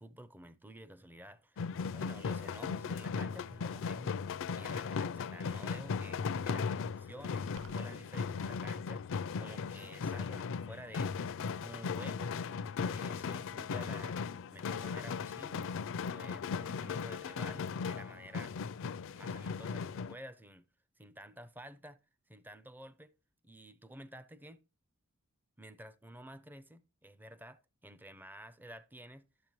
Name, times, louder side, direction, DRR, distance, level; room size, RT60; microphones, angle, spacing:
voice 1, 0.0-4.2 4.6-9.1 9.4-12.4 12.8-14.2 14.5-18.5 19.1-20.6 21.0-22.0 22.3-23.1 23.4-24.6 25.6-29.3, right 1 dB, 10° right, 0.5 m, -51 dB
sound 1, 1.6-20.2, left 5 dB, 65° left, 0.4 m, -37 dB
sound 2, 7.6-8.0, right 5 dB, 60° right, 0.5 m, -54 dB
12.0 x 7.3 x 3.0 m
head